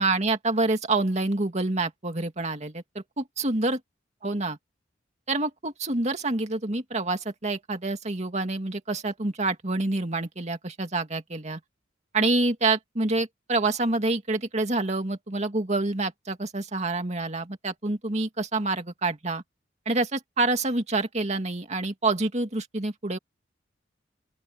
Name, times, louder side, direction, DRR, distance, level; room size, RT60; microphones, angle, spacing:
voice 1, 0.0-3.8 4.2-4.6 5.3-11.6 12.1-19.4 19.9-23.2, right 2 dB, 35° right, 2.2 m, -27 dB
open air
head